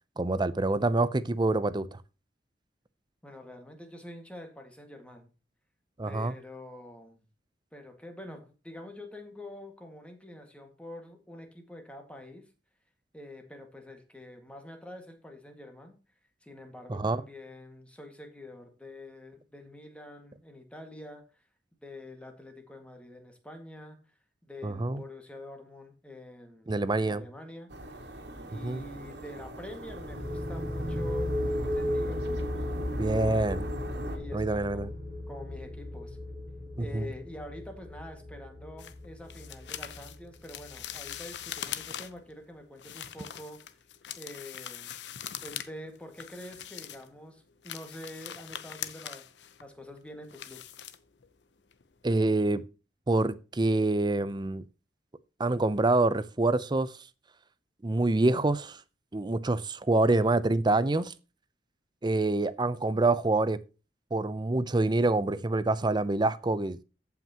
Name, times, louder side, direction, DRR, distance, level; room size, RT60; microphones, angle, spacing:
voice 1, 0.2-2.0 6.0-6.3 16.9-17.2 24.6-25.0 26.7-27.2 28.6-28.8 33.0-33.6 34.3-34.9 36.8-37.1 52.0-52.6 53.1-54.6 55.4-56.9 57.8-58.8 59.1-61.1 62.0-63.6 64.1-66.8, right 2 dB, 25° right, 0.6 m, -26 dB
voice 2, 3.2-5.3 6.0-7.2 7.7-12.5 13.1-16.0 16.4-21.3 21.8-24.0 24.5-27.9 28.5-32.5 34.1-34.9 35.3-36.2 36.8-43.6 44.2-45.0 45.4-49.2 49.6-50.6, left 1 dB, 5° left, 1.8 m, -46 dB
sound 1, 27.7-34.2, right 1 dB, 75° right, 2.1 m, -40 dB
sound 2, 29.8-41.4, left 1 dB, 55° right, 2.0 m, -35 dB
sound 3, 38.8-42.3 42.8-45.7 46.0-47.1 47.5-51.4 51.7-51.9 52.3-52.4, left 10 dB, 75° left, 0.8 m, -42 dB
14.5 x 5.8 x 2.9 m
head